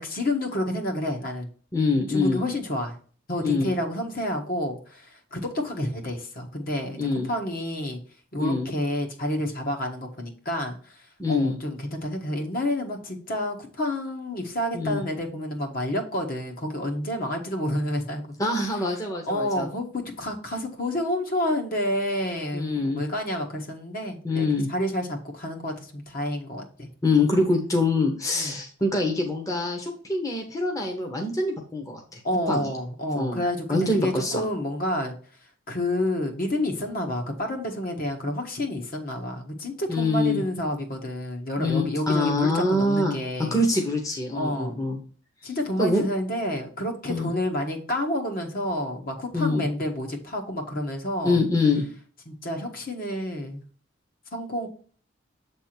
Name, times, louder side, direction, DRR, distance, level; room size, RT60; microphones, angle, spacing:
voice 1, 0.0-1.5 2.1-2.9 3.3-7.0 7.3-8.0 8.3-10.8 11.3-18.3 19.3-26.9 28.3-28.6 32.2-35.1 35.7-43.6 44.3-44.8 45.4-51.4 52.3-53.6 54.3-54.7, left 1 dB, 50° left, 3 dB, 1.4 m, -29 dB
voice 2, 1.7-2.4 3.4-3.7 7.0-7.3 8.4-8.7 11.2-11.6 14.7-15.0 18.4-19.7 22.5-23.0 24.2-24.7 27.0-32.2 32.5-32.7 33.1-33.4 33.7-34.4 39.9-40.4 41.6-43.2 43.5-45.0 45.8-46.0 47.1-47.3 49.3-49.7 51.2-51.9, left 2 dB, 15° left, 2 dB, 1.0 m, -24 dB
7.5 x 3.5 x 4.4 m, 0.43 s
head